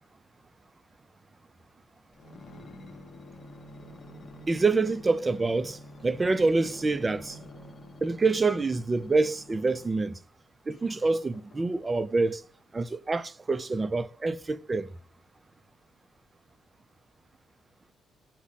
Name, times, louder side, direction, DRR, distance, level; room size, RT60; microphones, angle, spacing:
sound 1, 2.1-10.1 10.7-12.0 12.6-12.7, left 1 dB, 45° left, 0.7 m, -48 dB
voice 1, 4.5-7.4 8.0-10.2 10.7-12.4 12.7-14.9, right 3 dB, 25° right, 0.4 m, -26 dB
6.0 x 2.1 x 4.0 m
cardioid pair, 90°, 0 cm